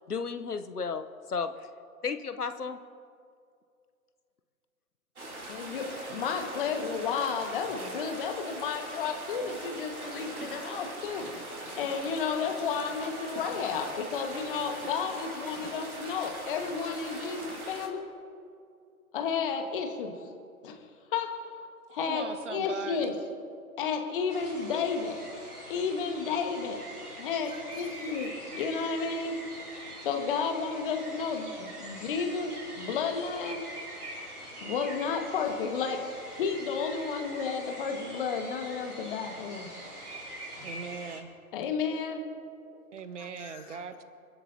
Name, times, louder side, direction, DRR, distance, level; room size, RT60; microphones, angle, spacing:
voice 1, 0.1-1.7 2.0-2.8, left 5 dB, 85° left, 10 dB, 0.9 m, -33 dB
sound 1, 5.2-17.9, right 1 dB, 70° right, 3.1 m, -41 dB
voice 2, 5.5-11.2 11.8-18.1 19.1-20.2 20.6-20.8 21.1-21.3 21.9-23.1 23.8-25.2 25.7-26.8 27.2-29.4 30.0-33.6 34.6-39.7 40.6-40.7 41.5-42.3 43.4-43.6, left 5 dB, 35° left, 4 dB, 1.6 m, -32 dB
voice 3, 22.1-23.2 40.6-41.3 42.9-44.0, right 6 dB, 50° right, 11 dB, 1.2 m, -39 dB
sound 2, 24.3-41.2, right 1 dB, 90° right, 3.6 m, -44 dB
29.5 x 11.0 x 2.8 m, 2.4 s
figure-of-eight pair, 125°, 45 cm